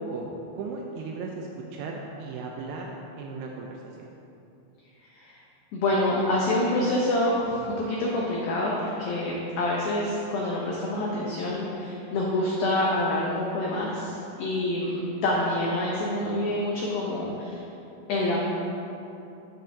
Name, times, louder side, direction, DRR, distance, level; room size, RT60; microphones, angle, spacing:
voice 1, 0.0-2.9 3.2-4.1, right 3 dB, 90° right, 0 dB, 2.3 m, -36 dB
voice 2, 5.7-17.6 18.1-18.4, left 1 dB, 80° left, -4 dB, 2.1 m, -27 dB
11.0 x 7.6 x 2.7 m, 2.8 s
omnidirectional pair, 5.3 m